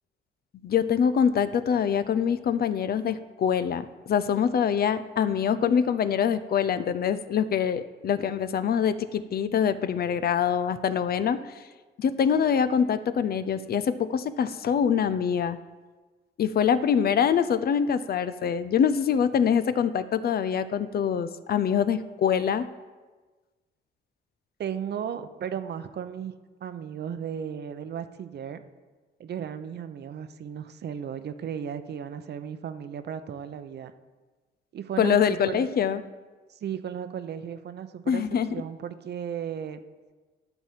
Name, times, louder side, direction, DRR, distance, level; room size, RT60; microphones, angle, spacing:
voice 1, 0.6-11.5 12.0-15.6 16.4-22.7 35.0-36.0 38.1-38.5, left 7 dB, 50° left, 12 dB, 0.6 m, -24 dB
voice 2, 24.6-26.3 26.6-28.6 29.2-33.9 34.7-35.7 36.5-38.2 38.5-39.8, right 8 dB, 55° right, 10 dB, 0.8 m, -35 dB
11.5 x 4.2 x 7.5 m, 1.3 s
cardioid pair, 90°, 20 cm